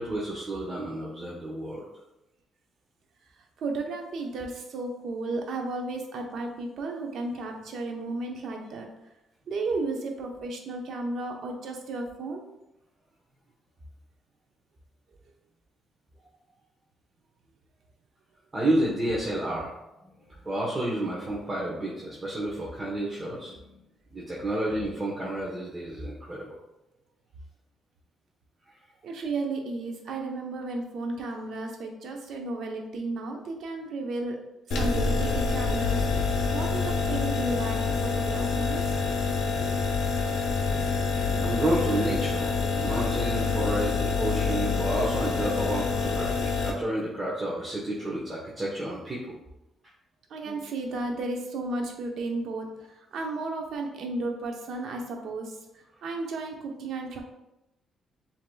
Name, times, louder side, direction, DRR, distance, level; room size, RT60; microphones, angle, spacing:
voice 1, 0.0-1.8 18.5-19.7 20.0-20.1 20.4-23.8 24.1-26.5 41.4-49.3 50.4-50.5, right 1 dB, 25° right, -5 dB, 1.0 m, -30 dB
voice 2, 3.6-8.9 9.5-12.4 29.0-34.4 34.7-36.1 36.5-38.9 50.3-57.2, right 2 dB, 70° right, 2 dB, 0.8 m, -33 dB
sound 1, 34.7-46.7, left 4 dB, 80° left, 0.7 m, -27 dB
7.5 x 2.9 x 2.2 m, 0.92 s
cardioid pair, 90°, 0 cm